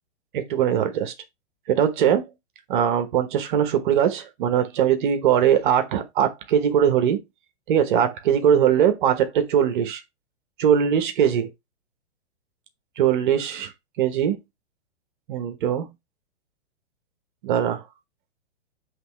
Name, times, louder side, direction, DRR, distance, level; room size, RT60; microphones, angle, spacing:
voice 1, 0.3-1.1 1.7-2.3 2.7-7.2 7.7-10.0 10.6-11.5 13.0-13.7 14.0-14.4 15.3-15.9 17.4-17.8, right 9 dB, 40° right, 1.1 m, -21 dB
8.0 x 3.1 x 4.6 m
hypercardioid pair, 155°, 36 cm